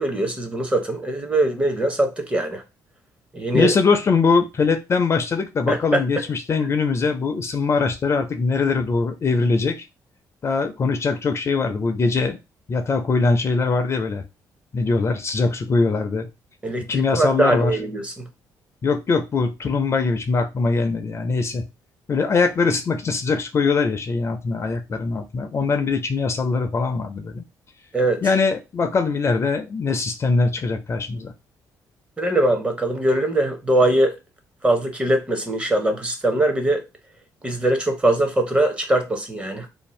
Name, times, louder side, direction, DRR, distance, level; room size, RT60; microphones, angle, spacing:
voice 1, 0.0-2.6 3.3-3.7 5.7-6.0 16.6-18.3 27.9-28.2 32.2-34.1 34.6-36.8 37.4-39.7, right 1 dB, 15° right, 0.7 m, -21 dB
voice 2, 3.5-9.8 10.4-12.4 12.7-14.2 14.7-16.3 16.9-17.8 18.8-21.7 22.1-27.4 28.2-31.3, left 4 dB, 40° left, 0.4 m, -22 dB
2.6 x 2.1 x 3.0 m
cardioid pair, 90°, 7 cm